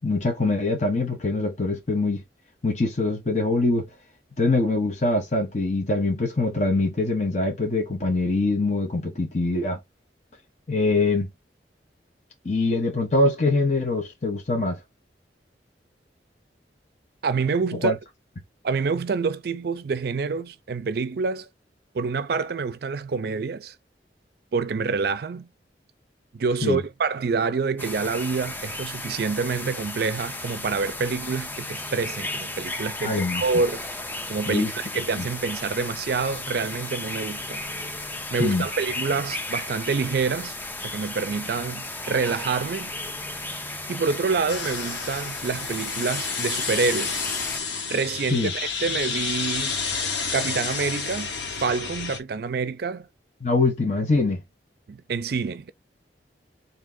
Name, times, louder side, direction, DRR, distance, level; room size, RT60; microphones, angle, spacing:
voice 1, 0.0-2.2 2.6-3.9 4.4-9.8 10.7-11.3 12.4-14.8 17.8-18.0 26.6-26.8 33.0-33.4 34.5-34.7 35.2-35.3 38.4-38.7 48.3-48.5 53.4-54.4, left 2 dB, 40° left, 0.9 m, -23 dB
voice 2, 17.2-17.9 18.6-21.5 21.9-23.7 24.5-25.5 26.3-33.8 34.3-37.6 38.3-40.5 40.8-42.9 43.9-47.2 47.9-49.8 50.3-51.3 51.6-53.1 54.9-55.7, right 4 dB, 60° right, 0.4 m, -27 dB
sound 1, 27.8-47.6, left 2 dB, 10° left, 0.4 m, -34 dB
sound 2, 44.5-52.2, left 5 dB, 90° left, 1.0 m, -30 dB
3.6 x 2.8 x 3.7 m
head